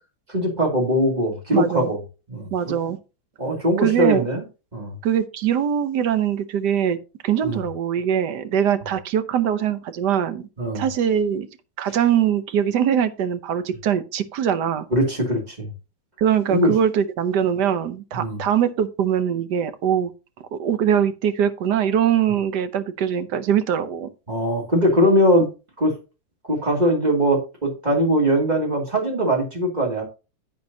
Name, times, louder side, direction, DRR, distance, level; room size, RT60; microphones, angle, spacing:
voice 1, 0.3-2.0 2.3-2.7 3.4-4.4 4.7-4.9 7.4-7.6 10.6-10.9 14.9-15.7 16.5-16.7 18.1-18.4 24.3-25.5 25.8-25.9 26.5-30.0, equal, 20° right, 2.6 m, -21 dB
voice 2, 1.5-1.9 2.5-3.0 3.8-4.3 5.0-7.0 7.2-10.5 10.7-11.5 11.8-14.9 16.2-20.1 20.5-24.1, right 9 dB, 65° right, 1.3 m, -22 dB
10.5 x 8.2 x 2.7 m
omnidirectional pair, 2.2 m